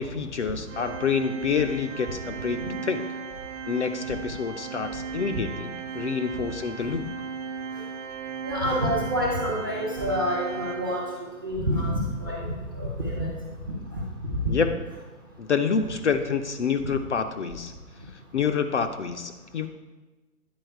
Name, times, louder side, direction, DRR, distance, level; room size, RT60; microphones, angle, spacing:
voice 1, 0.0-3.0 3.7-7.1 14.5-14.8 15.4-17.7 18.3-19.7, left 6 dB, 50° left, 7 dB, 0.5 m, -27 dB
Organ, 0.7-11.4, right 6 dB, 50° right, 1.0 m, -36 dB
voice 2, 8.4-11.1 11.4-13.3 13.6-14.4, equal, 15° right, -5 dB, 0.6 m, -28 dB
9.5 x 4.3 x 4.5 m, 1.2 s
hypercardioid pair, 160°, 46 cm